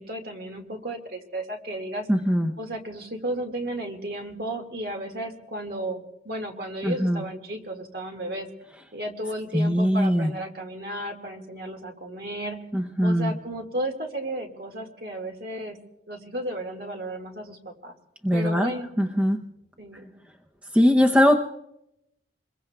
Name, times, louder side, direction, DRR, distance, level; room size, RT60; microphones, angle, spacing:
voice 1, 0.0-2.1 2.6-8.5 8.9-12.6 13.0-15.8 16.1-17.9 18.3-18.9 19.8-20.1, right 1 dB, 55° right, 4 dB, 1.9 m, -34 dB
voice 2, 2.1-2.5 6.8-7.2 9.5-10.3 12.7-13.3 18.2-18.7 19.0-19.4 20.7-21.4, equal, 5° right, 2 dB, 0.7 m, -21 dB
27.5 x 22.0 x 2.3 m, 0.81 s
head